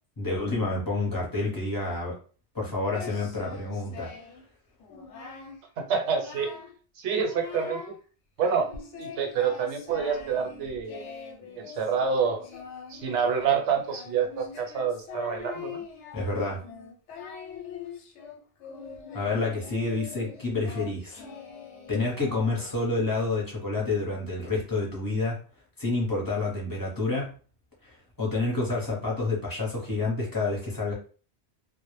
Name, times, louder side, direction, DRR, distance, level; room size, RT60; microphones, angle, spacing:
voice 1, 0.2-2.2 2.5-4.1 16.1-16.6 19.1-21.2 21.9-25.4 25.8-27.4 27.8-30.9, left 3 dB, 20° left, -5 dB, 0.6 m, -29 dB
Singing, 2.9-4.4 4.8-5.6 5.9-6.8 7.1-8.0 8.4-22.9, left 5 dB, 90° left, 0.9 m, -43 dB
voice 2, 5.8-6.5 7.0-7.8 8.4-8.7 9.0-11.1 11.5-12.4 12.9-15.8, right 6 dB, 80° right, 4 dB, 0.9 m, -27 dB
2.0 x 2.0 x 3.0 m, 0.40 s
omnidirectional pair, 1.2 m